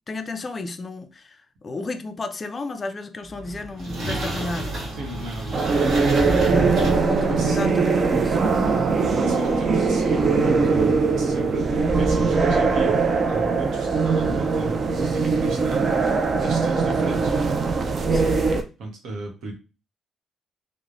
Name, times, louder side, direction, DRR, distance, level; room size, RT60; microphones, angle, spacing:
voice 1, 0.1-1.4 1.6-4.8 6.4-6.7 7.0-8.4 18.1-18.4, left 2 dB, 35° left, 0.4 m, -33 dB
sound 1, 3.3-8.2, right 1 dB, 65° right, 1.2 m, -31 dB
voice 2, 4.9-6.3 7.2-7.6 9.0-10.9 11.2-15.8 16.4-17.3 18.8-19.5, right 2 dB, 80° right, 0.9 m, -35 dB
sound 2, 5.5-18.6, right 4 dB, 45° right, 0.4 m, -21 dB
3.1 x 2.0 x 2.4 m
cardioid pair, 90°, 0 cm